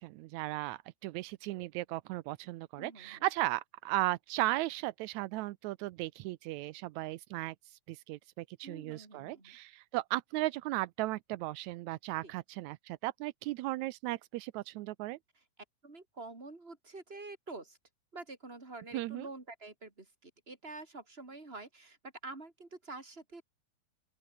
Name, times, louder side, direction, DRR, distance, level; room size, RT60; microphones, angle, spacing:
voice 1, 0.0-7.5 7.9-15.2 18.9-19.3, right 18 dB, 90° right, 1.6 m, -36 dB
voice 2, 2.8-3.2 8.6-9.6 12.2-12.4 15.3-17.8 18.1-23.4, right 3 dB, 15° right, 4.0 m, -47 dB
open air
omnidirectional pair, 4.0 m